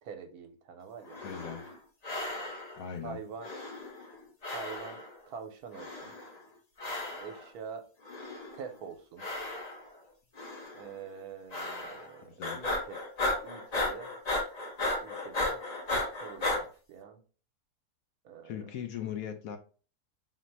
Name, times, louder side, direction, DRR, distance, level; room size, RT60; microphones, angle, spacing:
voice 1, 0.0-1.2 3.0-3.5 4.5-6.1 7.1-7.8 8.5-9.2 10.7-13.0 13.4-14.1 15.0-15.6 16.2-17.2 18.2-18.7, right 6 dB, 75° right, 1.2 m, -45 dB
sound 1, 1.0-1.8 2.0-2.8 3.4-4.2 4.4-5.2 5.7-6.4 6.8-7.4 8.0-8.7 9.2-10.0 10.4-10.8 11.5-12.1 12.4-16.6, left 2 dB, 40° left, 0.6 m, -35 dB
voice 2, 1.2-1.7 2.8-3.2 12.3-12.7 18.4-19.6, left 9 dB, 70° left, 0.9 m, -39 dB
4.0 x 2.1 x 4.5 m
omnidirectional pair, 1.7 m